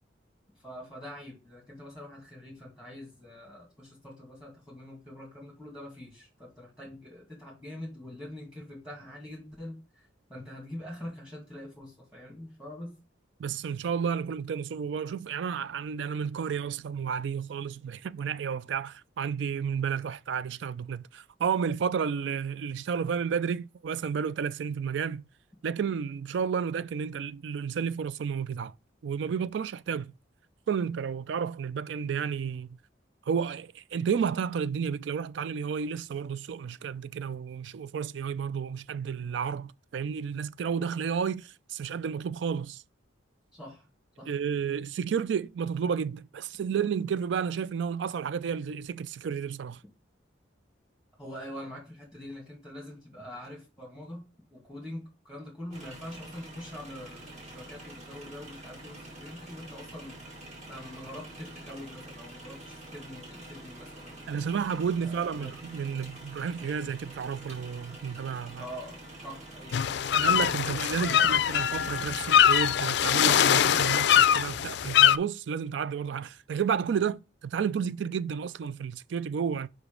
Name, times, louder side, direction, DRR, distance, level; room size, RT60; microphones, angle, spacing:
voice 1, 0.6-13.0 43.5-43.9 44.2-44.3 51.2-60.2 60.7-64.4 65.0-65.6 68.6-69.8, left 1 dB, 5° right, 2.1 m, -44 dB
voice 2, 13.4-25.2 25.6-28.7 29.0-30.1 30.7-32.8 33.3-42.8 44.3-49.8 64.3-68.7 70.1-79.7, right 7 dB, 65° right, 0.3 m, -31 dB
sound 1, 55.7-72.4, right 1 dB, 35° right, 2.2 m, -46 dB
sound 2, 69.7-75.2, left 10 dB, 60° left, 0.4 m, -23 dB
5.1 x 5.0 x 5.1 m
head